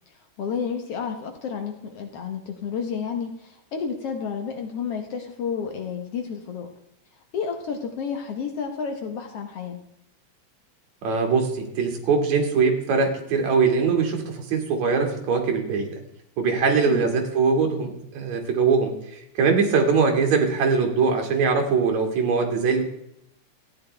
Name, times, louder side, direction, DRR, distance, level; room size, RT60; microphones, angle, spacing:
voice 1, 0.4-6.7 7.3-9.8 16.9-17.0, left 6 dB, 65° left, 5 dB, 1.7 m, -31 dB
voice 2, 11.0-16.0 16.4-22.9, right 5 dB, 65° right, 2 dB, 3.2 m, -22 dB
14.0 x 9.7 x 3.3 m, 0.76 s
omnidirectional pair, 3.5 m